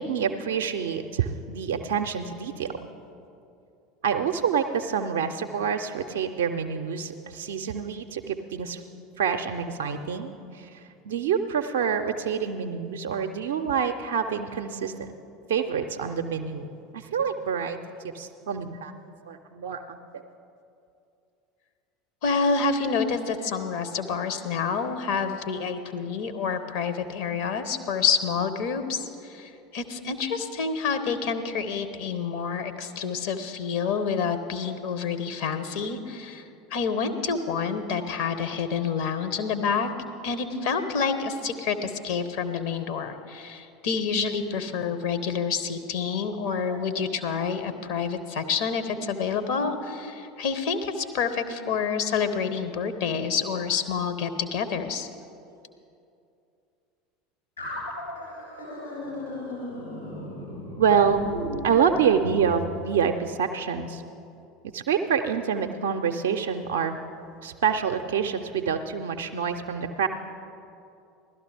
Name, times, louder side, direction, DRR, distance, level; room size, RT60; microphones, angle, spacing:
voice 1, 0.0-2.9 4.0-8.8 9.2-15.1 15.5-16.7 16.9-17.8 18.1-18.9 19.3-20.2 46.4-47.0 60.8-61.2 61.6-64.0 64.7-67.0 67.4-70.1, right 7 dB, 65° right, 7 dB, 0.4 m, -27 dB
voice 2, 22.2-36.4 36.7-39.9 40.2-55.1, left 5 dB, 55° left, 9 dB, 0.8 m, -28 dB
sound 1, 57.6-62.5, left 1 dB, 85° left, 3.6 m, -36 dB
16.0 x 12.5 x 3.3 m, 2.6 s
figure-of-eight pair, 75°, 0 cm